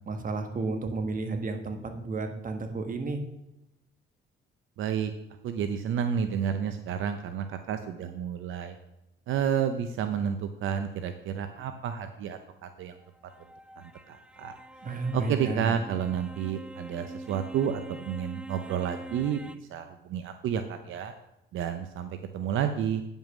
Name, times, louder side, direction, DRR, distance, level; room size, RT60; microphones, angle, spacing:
voice 1, 0.1-3.2 14.8-15.7, right 3 dB, 45° right, 6 dB, 1.5 m, -32 dB
voice 2, 4.8-5.1 5.4-8.8 9.3-13.0 13.8-14.6 15.1-21.1 21.5-23.0, right 8 dB, 80° right, 8 dB, 0.7 m, -31 dB
sound 1, 13.0-19.6, right 1 dB, 5° right, 0.4 m, -44 dB
9.3 x 5.4 x 6.2 m, 0.88 s
cardioid pair, 90°, 20 cm